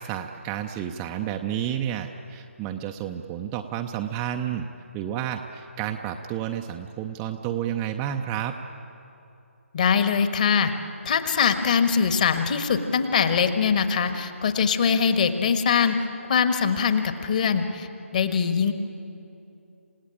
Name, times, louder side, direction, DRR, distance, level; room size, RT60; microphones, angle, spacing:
voice 1, 0.0-4.7 4.9-8.6, right 10 dB, 15° right, 4 dB, 0.6 m, -30 dB
voice 2, 9.7-10.7 11.0-16.0 16.3-17.9 18.1-18.7, left 6 dB, 35° left, 9 dB, 1.5 m, -22 dB
28.0 x 17.0 x 8.9 m, 2.7 s
figure-of-eight pair, 150°, 7 cm